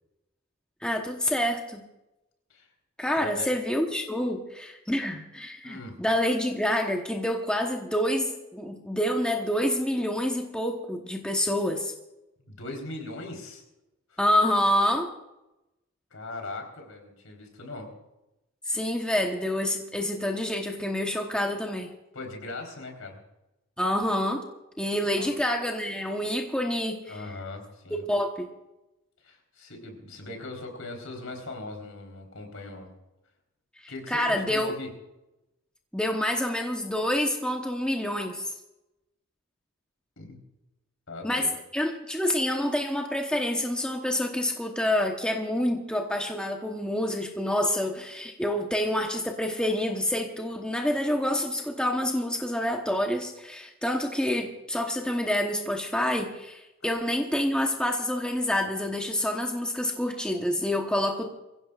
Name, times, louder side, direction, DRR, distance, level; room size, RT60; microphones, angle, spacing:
voice 1, 0.8-1.8 3.0-11.9 14.2-15.1 18.7-21.9 23.8-24.5 24.8-27.2 27.9-28.5 34.1-34.7 35.9-38.5 41.2-61.3, left 1 dB, 5° left, 2 dB, 1.0 m, -27 dB
voice 2, 5.6-6.0 12.4-13.6 14.1-14.2 16.1-17.9 22.1-23.2 25.1-25.3 27.1-28.0 29.2-32.9 33.9-34.9 40.2-40.4 41.1-41.6, left 2 dB, 75° left, 2 dB, 4.0 m, -40 dB
24.0 x 16.0 x 2.5 m, 0.96 s
head